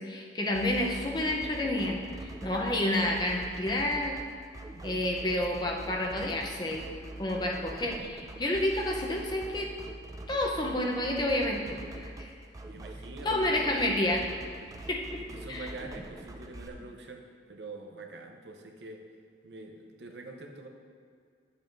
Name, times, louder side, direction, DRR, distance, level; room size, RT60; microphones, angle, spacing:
voice 1, 0.0-4.2 4.8-6.9 7.2-9.7 10.3-12.3 13.2-14.3 14.8-15.0 15.5-15.7, left 1 dB, 25° left, 0 dB, 0.7 m, -29 dB
sound 1, 0.5-16.7, right 2 dB, 20° right, 0.4 m, -44 dB
voice 2, 12.6-13.8 15.1-17.2 17.5-19.0 19.4-20.7, right 2 dB, 65° right, 3 dB, 0.7 m, -45 dB
10.5 x 7.0 x 2.6 m, 2.2 s
head